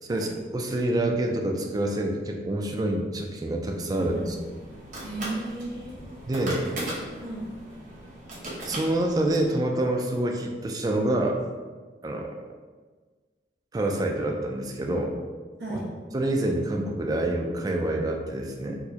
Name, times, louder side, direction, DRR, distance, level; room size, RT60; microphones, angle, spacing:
voice 1, 0.5-4.4 6.2-6.6 8.6-11.4 12.0-12.3 13.7-15.1 16.1-18.7, right 1 dB, 20° right, 2 dB, 0.3 m, -27 dB
sound 1, 3.9-9.5, right 1 dB, 45° right, 1.0 m, -38 dB
voice 2, 3.9-4.4 5.0-6.0 7.2-7.5 15.6-15.9, right 2 dB, 80° right, -5 dB, 1.0 m, -34 dB
4.5 x 2.1 x 2.8 m, 1.4 s
head